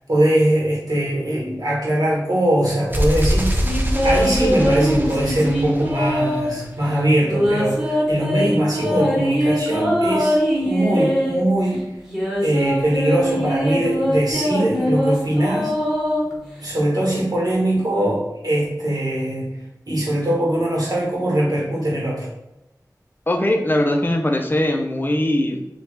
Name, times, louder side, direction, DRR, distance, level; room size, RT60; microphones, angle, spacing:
voice 1, 0.1-3.7 4.0-11.9 12.4-15.8 16.6-19.5 19.9-22.3, right 1 dB, 60° right, -5 dB, 1.3 m, -21 dB
sound 1, 2.9-6.8, equal, 30° right, 0.6 m, -24 dB
sound 2, 3.5-6.6 7.2-11.4 12.0-16.7, equal, 5° right, 1.2 m, -22 dB
voice 2, 23.3-25.6, left 1 dB, 30° left, 3 dB, 0.5 m, -20 dB
3.0 x 2.4 x 3.2 m, 0.91 s
wide cardioid pair, 45°, 7 cm